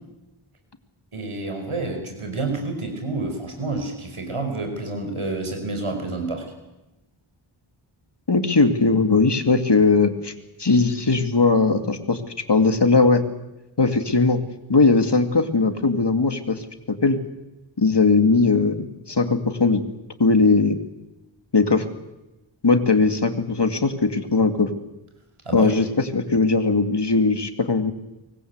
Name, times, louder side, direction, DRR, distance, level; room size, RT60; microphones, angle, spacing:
voice 1, 1.1-6.4 25.5-25.7, right 3 dB, 85° right, 4 dB, 5.4 m, -29 dB
voice 2, 8.3-10.3 10.6-12.2 12.5-13.2 13.8-14.4 14.7-17.2 17.8-19.8 20.2-20.8 21.5-21.9 22.6-24.7 25.5-27.9, left 3 dB, 55° left, 7 dB, 2.5 m, -19 dB
24.5 x 20.0 x 8.2 m, 0.99 s
wide cardioid pair, 45°, 50 cm